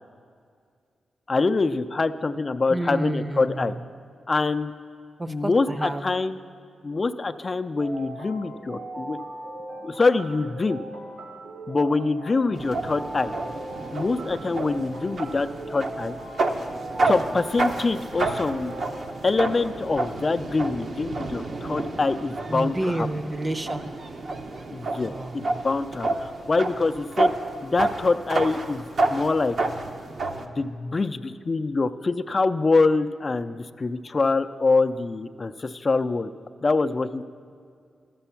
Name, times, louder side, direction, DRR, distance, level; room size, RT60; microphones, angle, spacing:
voice 1, 1.3-3.7 4.3-4.7 5.3-6.4 6.8-9.2 9.8-10.8 11.7-13.3 13.9-16.2 17.1-18.7 19.2-23.1 24.7-27.3 27.6-29.6 30.4-36.3 36.6-37.2, left 3 dB, 40° left, 9 dB, 0.4 m, -25 dB
voice 2, 2.7-3.7 5.2-6.0 22.5-23.9 25.0-25.3, right 1 dB, 30° right, 10 dB, 0.7 m, -29 dB
sound 1, 7.8-19.1, right 1 dB, 85° right, 1.6 m, -39 dB
sound 2, 12.5-30.5, right 2 dB, 60° right, 0.8 m, -30 dB
12.0 x 6.9 x 5.7 m, 2.2 s
supercardioid pair, 45°, 0 cm